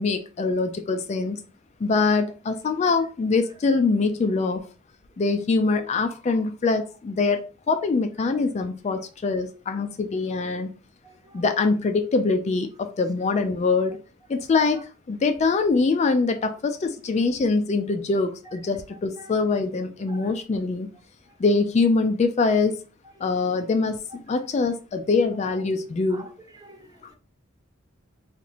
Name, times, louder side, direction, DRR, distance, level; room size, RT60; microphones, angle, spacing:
voice 1, 0.0-1.4 1.8-4.6 5.2-10.7 11.3-14.0 14.3-14.8 15.1-20.9 21.4-22.7 23.2-26.3, left 4 dB, 35° left, 0.3 m, -23 dB
voice 2, 11.0-11.4 19.2-19.3 20.1-20.2 26.1-26.2 26.6-26.9, right 1 dB, 20° right, 0.5 m, -46 dB
2.9 x 2.5 x 4.0 m
head